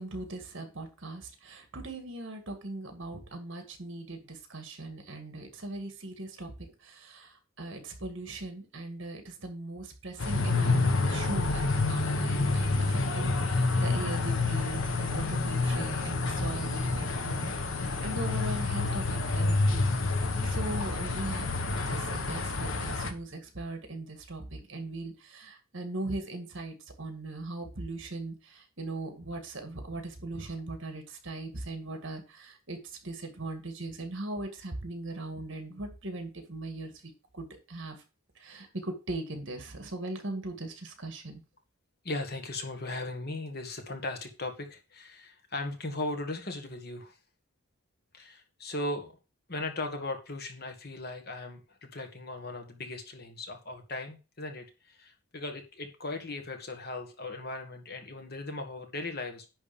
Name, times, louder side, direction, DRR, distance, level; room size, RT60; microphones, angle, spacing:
voice 1, 0.0-6.5 6.8-19.9 20.2-21.5 21.9-38.0 38.4-41.4, right 2 dB, 60° right, 6 dB, 2.0 m, -39 dB
sound 1, 10.2-23.1, left 3 dB, 65° left, 1.2 m, -28 dB
voice 2, 42.0-47.2 48.1-49.1 49.5-59.5, left 2 dB, 45° left, 5 dB, 1.6 m, -38 dB
10.5 x 3.5 x 7.0 m, 0.31 s
head